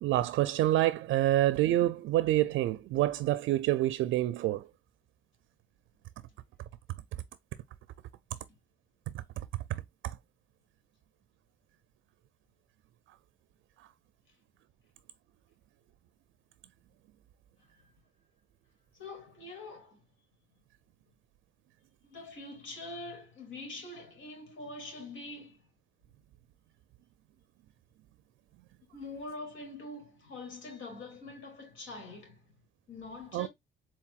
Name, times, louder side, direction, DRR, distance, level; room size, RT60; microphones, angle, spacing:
voice 1, 0.0-4.7 9.7-10.2 33.3-33.5, right 14 dB, 80° right, 0.4 m, -27 dB
voice 2, 17.6-17.9 18.9-20.0 22.0-25.7 28.8-32.4 32.9-33.5, left 2 dB, 80° left, 2.8 m, -44 dB
4.6 x 3.6 x 2.3 m
cardioid pair, 90°, 20 cm